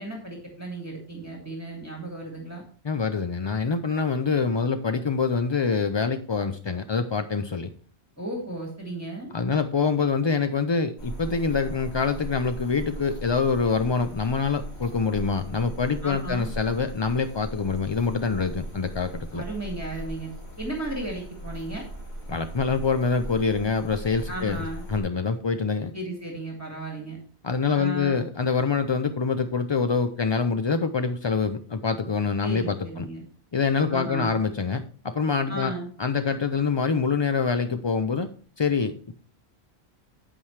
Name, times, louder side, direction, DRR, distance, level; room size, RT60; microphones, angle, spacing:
voice 1, 0.0-2.6 8.2-9.3 16.0-16.5 19.3-20.3 20.6-21.9 24.3-24.8 25.9-27.2 27.7-28.2 32.4-33.2 33.9-34.4 35.5-35.9, right 1 dB, 15° right, -1 dB, 2.0 m, -34 dB
voice 2, 2.8-7.7 9.3-19.4 22.3-25.9 27.4-33.1 33.5-35.7 36.0-38.3 38.6-39.2, left 5 dB, 45° left, 8 dB, 0.3 m, -25 dB
sound 1, 11.0-25.0, right 1 dB, 85° left, 2.5 m, -39 dB
9.2 x 8.6 x 3.2 m, 0.43 s
omnidirectional pair, 1.1 m